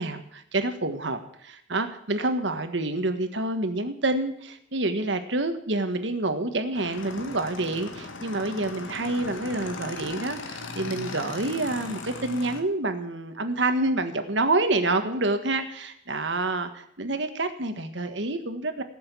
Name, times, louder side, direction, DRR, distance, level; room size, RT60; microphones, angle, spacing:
voice 1, 0.0-18.8, right 2 dB, 65° right, 8 dB, 1.6 m, -28 dB
Motorcycle / Engine, 6.7-12.6, left 3 dB, 85° left, 1.7 m, -38 dB
17.5 x 7.0 x 8.3 m, 0.71 s
head